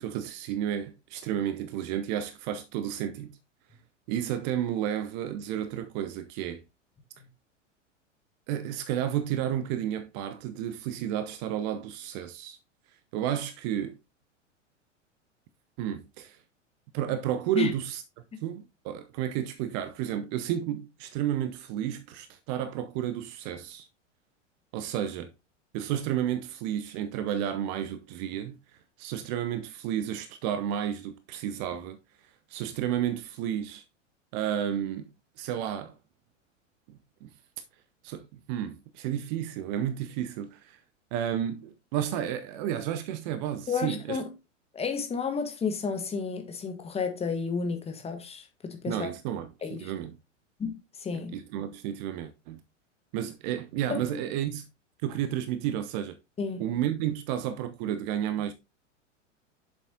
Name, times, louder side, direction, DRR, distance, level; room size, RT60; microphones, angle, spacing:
voice 1, 0.0-3.3 4.1-6.6 8.5-12.6 13.1-14.0 15.8-16.4 16.9-18.0 18.4-23.9 24.7-25.3 25.7-28.6 29.0-32.0 32.5-33.8 34.3-35.1 35.4-35.9 36.9-37.3 38.0-40.8 41.1-44.2 48.9-50.1 51.3-52.6 53.1-54.6 55.0-56.1 56.6-58.5, right 10 dB, 35° right, 0.7 m, -32 dB
voice 2, 43.7-44.3 44.7-49.1 49.6-49.9 50.6-51.3 53.9-54.0 56.4-56.7, left 5 dB, 15° left, 1.4 m, -31 dB
7.9 x 7.0 x 2.8 m
figure-of-eight pair, 90°, 38 cm